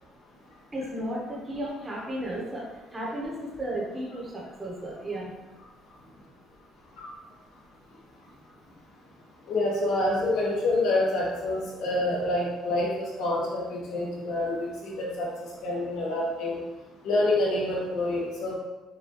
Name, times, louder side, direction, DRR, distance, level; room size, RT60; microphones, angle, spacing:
voice 1, 0.7-2.6 2.9-5.3, right 1 dB, 15° right, -5 dB, 1.0 m, -34 dB
voice 2, 9.5-15.3 15.6-16.6 17.0-18.5, left 2 dB, 70° left, -5 dB, 1.4 m, -27 dB
6.2 x 2.6 x 3.0 m, 1.1 s
cardioid pair, 165°, 0 cm